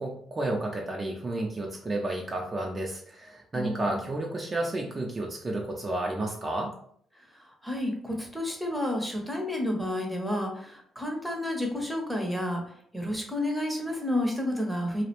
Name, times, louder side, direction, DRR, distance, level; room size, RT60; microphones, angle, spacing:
voice 1, 0.0-6.7, right 2 dB, 30° right, 0 dB, 0.4 m, -31 dB
voice 2, 3.5-4.0 7.3-12.6 12.9-15.0, left 1 dB, 5° left, 1 dB, 0.7 m, -30 dB
2.3 x 2.0 x 2.9 m, 0.62 s
cardioid pair, 90°, 0 cm